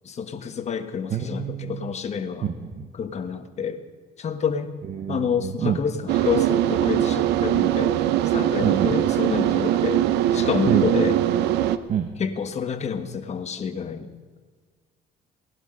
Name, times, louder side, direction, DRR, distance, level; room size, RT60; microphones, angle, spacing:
voice 1, 0.0-2.5 3.0-3.8 4.2-4.7 5.1-7.9 8.2-10.0 10.3-11.2 12.2-14.1, left 6 dB, 40° left, 8 dB, 1.3 m, -28 dB
voice 2, 1.1-1.9 2.4-2.9 4.9-5.8 8.6-9.0 10.7-10.8 11.9-12.1, right 8 dB, 45° right, 6 dB, 1.1 m, -27 dB
sound 1, 6.1-11.8, right 12 dB, 85° right, 0.7 m, -21 dB
18.0 x 11.5 x 5.3 m, 1.5 s
cardioid pair, 110°, 17 cm